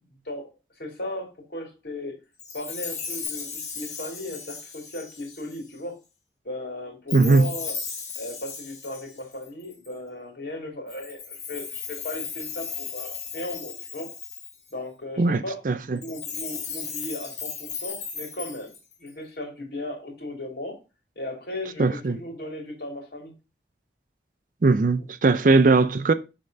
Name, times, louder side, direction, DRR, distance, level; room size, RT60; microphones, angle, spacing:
voice 1, 0.2-2.2 2.5-5.9 6.4-7.8 8.1-14.1 14.7-15.6 15.9-18.7 19.0-20.8 21.2-23.3 24.9-25.1 25.4-25.7, left 1 dB, 60° left, 2.7 m, -36 dB
Chime, 2.4-5.7 7.1-9.9 10.9-14.7 16.0-19.1, left 6 dB, 40° left, 1.2 m, -36 dB
voice 2, 7.1-7.5 15.2-16.0 21.8-22.2 24.6-26.1, right 3 dB, 45° right, 0.4 m, -19 dB
6.6 x 3.7 x 5.2 m
head